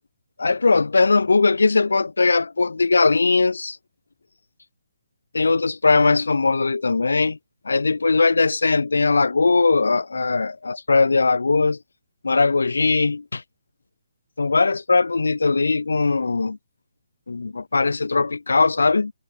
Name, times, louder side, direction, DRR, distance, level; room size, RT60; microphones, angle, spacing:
voice 1, 0.4-3.8 5.3-7.4 7.7-11.8 12.2-13.4 14.4-16.6 17.3-19.1, left 3 dB, 75° left, 2.1 m, -19 dB
figure-of-eight pair, 140°, 0 cm